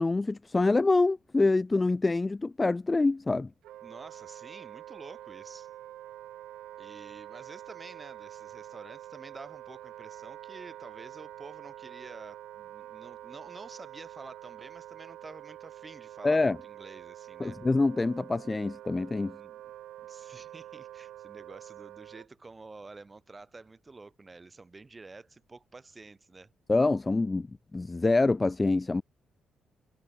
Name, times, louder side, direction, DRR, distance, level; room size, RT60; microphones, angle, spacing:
voice 1, 0.0-3.5 16.2-16.6 17.4-19.4 26.7-27.5 27.7-29.0, left 3 dB, 20° left, 0.6 m, -25 dB
Wind instrument woodwind instrument, 3.6-22.3, right 13 dB, 80° right, 1.8 m, -46 dB
voice 2, 3.8-5.7 6.8-17.6 19.3-19.6 20.0-26.5, right 3 dB, 25° right, 7.0 m, -49 dB
cardioid pair, 90°, 0 cm